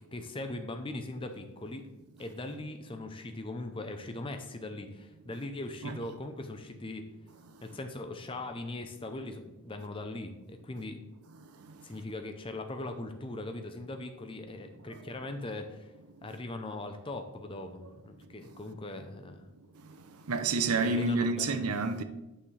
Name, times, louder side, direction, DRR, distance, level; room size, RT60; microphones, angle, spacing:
voice 1, 0.1-1.9 2.2-7.1 7.6-11.0 11.8-15.9 16.2-19.5 20.8-21.7, left 2 dB, 25° left, 0.6 m, -40 dB
voice 2, 20.3-22.0, right 3 dB, 85° right, 0.7 m, -29 dB
9.4 x 5.7 x 3.3 m
head